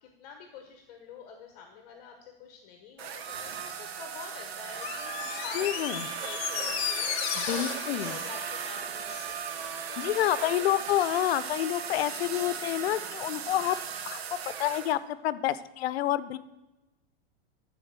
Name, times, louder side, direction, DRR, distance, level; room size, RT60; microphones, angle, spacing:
voice 1, 0.0-10.7, left 6 dB, 40° left, 4 dB, 1.1 m, -48 dB
sound 1, 3.0-15.0, right 7 dB, 90° right, 1.0 m, -37 dB
Door, 4.7-9.3 9.6-9.7, left 10 dB, 25° left, 0.5 m, -35 dB
sound 2, 4.9-10.4, right 1 dB, 40° right, 3.2 m, -59 dB
voice 2, 5.5-6.1 7.3-8.2 10.0-13.8 14.1-14.2 14.6-16.4, left 13 dB, 85° left, 15 dB, 0.7 m, -28 dB
12.5 x 4.2 x 6.6 m, 1.0 s
supercardioid pair, 175°, 30 cm